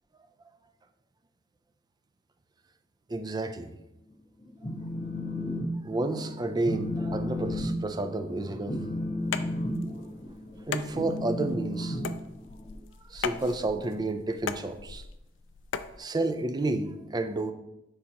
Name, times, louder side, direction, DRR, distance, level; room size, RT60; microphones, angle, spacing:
voice 1, 3.1-3.8 5.8-8.8 9.8-10.1 10.7-12.0 13.1-15.0 16.0-17.5, right 2 dB, 20° right, 0.4 m, -31 dB
Telephone, 4.4-5.7 6.0-6.3 6.6-12.7, left 1 dB, 40° left, 1.2 m, -33 dB
sound 1, 9.2-16.0, left 6 dB, 70° left, 0.4 m, -38 dB
10.0 x 4.0 x 2.9 m
head